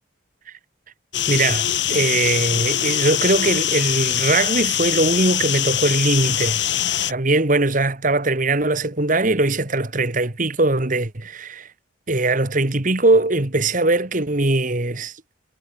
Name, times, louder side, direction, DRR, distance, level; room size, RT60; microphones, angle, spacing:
sound 1, 1.1-7.1, left 11 dB, 60° left, 1.7 m, -23 dB
voice 1, 1.3-6.6 7.1-11.7 12.1-15.1, right 2 dB, 40° right, 1.6 m, -20 dB
head